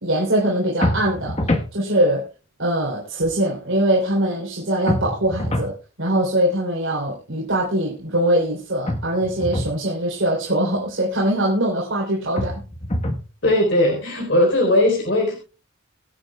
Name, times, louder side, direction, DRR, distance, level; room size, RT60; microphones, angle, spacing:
voice 1, 0.0-1.4 1.7-2.3 2.6-12.6, right 1 dB, 75° right, -3 dB, 3.4 m, -22 dB
sound 1, 0.8-1.7 4.9-5.8 8.9-9.8 12.4-13.3, left 1 dB, 30° left, 1.2 m, -24 dB
voice 2, 13.4-15.4, left 1 dB, 60° left, 0 dB, 4.0 m, -18 dB
24.0 x 8.2 x 2.3 m, 0.32 s
head